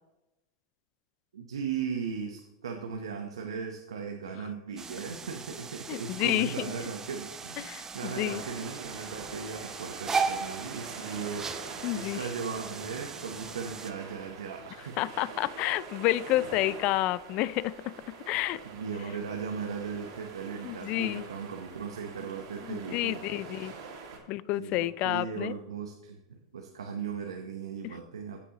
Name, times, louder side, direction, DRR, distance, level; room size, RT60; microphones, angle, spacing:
voice 1, 1.3-15.0 18.6-23.2 24.6-28.4, right 6 dB, 90° right, 4 dB, 0.9 m, -37 dB
sound 1, 4.8-13.9, right 5 dB, 20° right, 0.7 m, -37 dB
voice 2, 5.9-6.6 7.6-8.4 11.8-12.2 15.0-18.6 20.6-21.2 22.7-23.7 24.3-25.5 27.8-27.9, left 16 dB, 50° left, 19 dB, 0.4 m, -30 dB
sound 2, 6.1-14.7 15.1-15.2 20.1-20.6, right 7 dB, 50° right, 1.4 m, -57 dB
sound 3, 8.0-24.2, right 5 dB, 70° right, 2.2 m, -45 dB
15.0 x 5.4 x 2.9 m, 0.98 s
hypercardioid pair, 105°, 3 cm